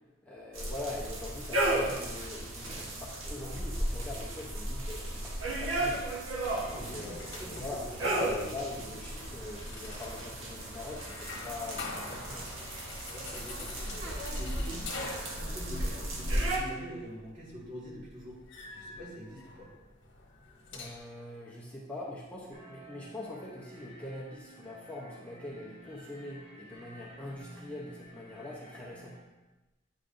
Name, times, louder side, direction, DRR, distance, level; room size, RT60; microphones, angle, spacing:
voice 1, 0.2-6.0 6.6-7.8 8.5-12.6 20.7-29.2, left 2 dB, 5° left, -5 dB, 0.8 m, -43 dB
sound 1, 0.5-16.6, right 1 dB, 80° right, 1.2 m, -35 dB
sound 2, 6.4-21.0, left 3 dB, 65° left, 1.2 m, -46 dB
voice 2, 6.6-8.5 13.1-14.9 15.2-18.4 18.7-19.7, equal, 45° right, -5 dB, 2.0 m, -44 dB
sound 3, 22.5-29.2, equal, 30° right, 1.2 m, -53 dB
8.8 x 5.1 x 2.6 m, 1.1 s
head